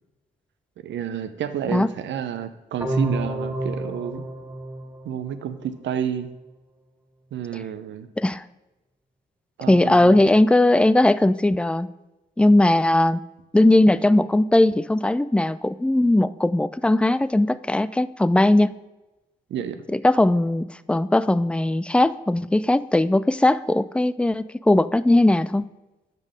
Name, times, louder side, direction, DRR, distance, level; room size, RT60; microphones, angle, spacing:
voice 1, 0.8-4.2 5.0-6.3 7.3-8.1 9.6-10.2 19.5-19.8, right 9 dB, 65° right, 10 dB, 0.7 m, -30 dB
sound 1, 2.8-5.8, right 1 dB, 15° right, 2.4 m, -29 dB
voice 2, 9.7-11.9 12.4-13.2 13.5-18.8 19.9-25.7, left 1 dB, 5° left, 16 dB, 0.3 m, -19 dB
5.3 x 5.3 x 6.4 m, 1.0 s
hypercardioid pair, 40°, 21 cm